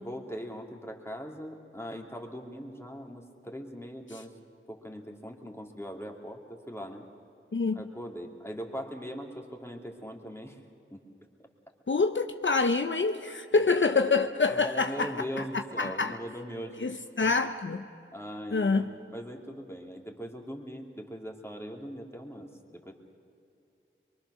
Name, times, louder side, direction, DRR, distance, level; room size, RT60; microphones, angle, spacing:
voice 1, 0.0-4.3 4.7-7.0 7.8-10.6 10.9-11.0 14.5-16.9 17.2-17.3 18.1-18.7 19.1-22.9, equal, 10° left, 1 dB, 2.8 m, -40 dB
voice 2, 7.5-7.9 11.9-16.2 16.8-17.8 18.5-18.9, left 4 dB, 65° left, 7 dB, 0.7 m, -27 dB
23.5 x 23.0 x 6.4 m, 2.6 s
wide cardioid pair, 45°, 21 cm